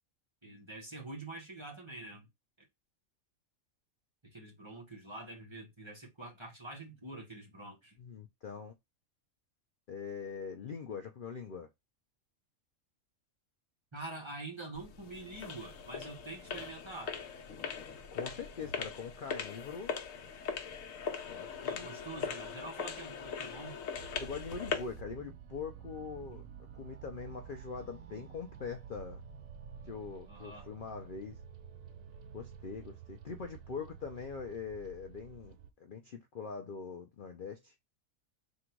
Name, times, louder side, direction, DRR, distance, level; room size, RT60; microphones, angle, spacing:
voice 1, 0.4-2.3 4.2-8.0 13.9-17.2 21.6-23.8 30.3-30.7, right 2 dB, 20° right, 1.3 m, -46 dB
voice 2, 8.0-8.7 9.9-11.7 18.1-19.9 21.3-21.9 24.2-26.4 26.7-29.2 29.9-31.4 32.3-37.7, left 5 dB, 50° left, 0.6 m, -43 dB
sound 1, 14.7-25.0, left 6 dB, 80° left, 1.1 m, -40 dB
sound 2, 23.9-35.7, right 8 dB, 80° right, 1.0 m, -50 dB
3.8 x 2.6 x 4.4 m
omnidirectional pair, 1.4 m